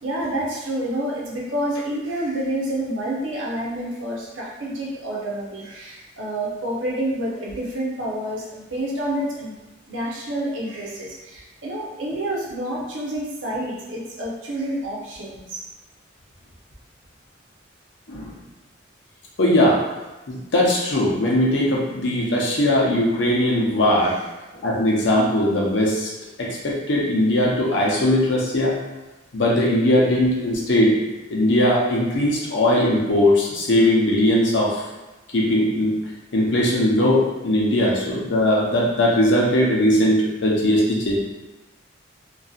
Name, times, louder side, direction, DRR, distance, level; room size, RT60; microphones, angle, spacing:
voice 1, 0.0-9.5 9.9-15.6, right 1 dB, 80° right, -5 dB, 0.8 m, -28 dB
voice 2, 18.1-18.4 19.4-19.8 20.3-24.2 24.5-26.1 26.4-28.8 29.3-31.0 31.3-34.8 35.3-36.0 36.3-41.2, left 1 dB, 70° left, -3 dB, 0.7 m, -19 dB
2.6 x 2.4 x 2.4 m, 1.1 s
head